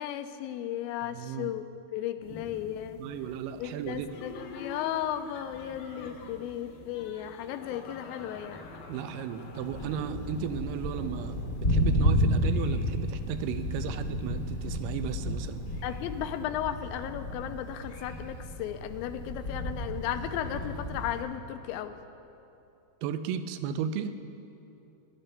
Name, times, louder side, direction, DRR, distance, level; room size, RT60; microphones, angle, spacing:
voice 1, 0.0-1.6 1.9-3.0 3.6-8.7 15.8-22.0, left 11 dB, 90° left, 9 dB, 2.4 m, -35 dB
voice 2, 1.1-1.5 3.0-4.2 8.9-15.6 23.0-24.1, right 8 dB, 80° right, 10 dB, 2.0 m, -35 dB
sound 1, 2.2-16.4, equal, 15° left, 0.5 m, -49 dB
Laughter, 4.1-10.4, left 4 dB, 70° left, 2.2 m, -47 dB
Thunder, 9.6-21.2, left 1 dB, 35° left, 1.2 m, -32 dB
20.5 x 12.0 x 2.2 m, 2.8 s
omnidirectional pair, 4.1 m